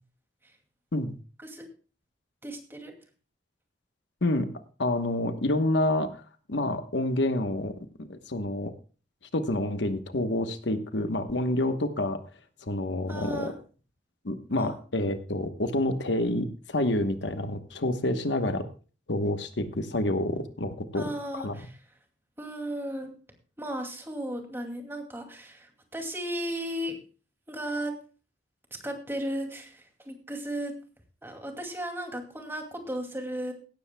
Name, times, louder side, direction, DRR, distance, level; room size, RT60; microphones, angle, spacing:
voice 1, 2.4-2.9 13.1-13.5 14.5-15.1 20.9-21.8 22.4-23.1 23.6-26.9 27.5-27.9 28.8-30.7 31.2-33.5, right 1 dB, 15° right, 3 dB, 2.3 m, -35 dB
voice 2, 4.8-6.2 6.5-8.7 9.3-12.2 12.7-13.5 14.2-18.7 19.1-21.1 21.3-21.5, left 1 dB, 75° left, 9 dB, 1.1 m, -28 dB
17.0 x 13.5 x 2.2 m, 0.37 s
head